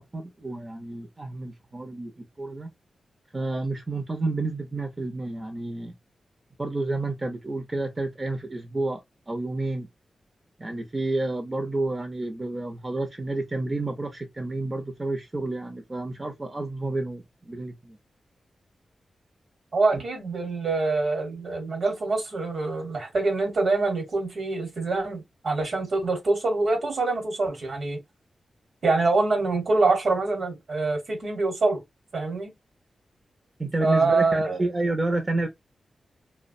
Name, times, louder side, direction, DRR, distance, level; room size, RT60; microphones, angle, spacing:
voice 1, 0.0-2.7 3.3-5.9 6.6-9.0 9.3-9.9 10.6-18.0 19.9-20.0 33.6-35.5, right 2 dB, 35° right, 0.6 m, -30 dB
voice 2, 19.7-28.0 28.8-31.8 32.1-32.5 33.8-34.6, right 3 dB, 70° right, 1.1 m, -25 dB
2.3 x 2.1 x 2.5 m
supercardioid pair, 40°, 0 cm